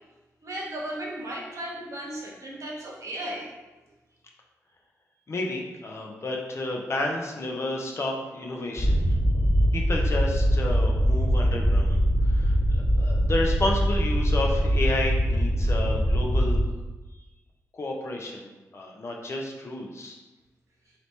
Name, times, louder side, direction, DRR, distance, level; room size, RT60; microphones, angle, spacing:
voice 1, 0.4-3.5, right 1 dB, 60° right, -3 dB, 1.1 m, -35 dB
voice 2, 5.3-9.0 9.7-16.6 17.7-20.2, left 2 dB, 50° left, 0 dB, 0.7 m, -31 dB
sound 1, 8.8-16.6, equal, 20° left, 1.4 m, -22 dB
3.4 x 2.8 x 4.1 m, 1.1 s
cardioid pair, 65°, 6 cm